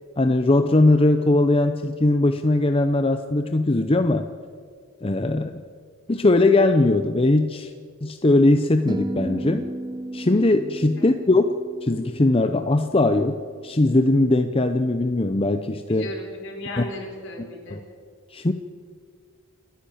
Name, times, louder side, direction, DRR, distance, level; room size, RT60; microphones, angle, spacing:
voice 1, 0.2-4.3 5.0-5.6 6.1-7.7 8.0-9.7 10.1-16.1 16.8-16.9 17.7-17.8 18.3-18.5, left 2 dB, 25° left, 8 dB, 0.7 m, -20 dB
sound 1, 8.9-13.2, right 1 dB, 20° right, 0.8 m, -34 dB
voice 2, 15.9-17.8, left 1 dB, 60° left, 2 dB, 4.5 m, -36 dB
29.0 x 10.5 x 8.6 m, 2.1 s
head